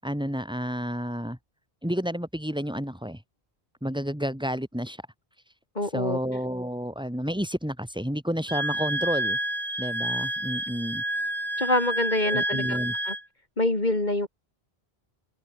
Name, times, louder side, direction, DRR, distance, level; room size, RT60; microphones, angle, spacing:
voice 1, 0.0-1.4 1.8-3.2 3.8-5.0 5.9-9.4 9.8-11.0 12.2-12.9, equal, 5° right, 3.3 m, -30 dB
voice 2, 5.8-6.2 11.6-12.8 13.1-13.2 13.6-14.3, left 1 dB, 45° left, 4.0 m, -25 dB
Wind instrument woodwind instrument, 8.5-13.2, right 1 dB, 50° right, 7.7 m, -29 dB
open air
omnidirectional pair, 1.0 m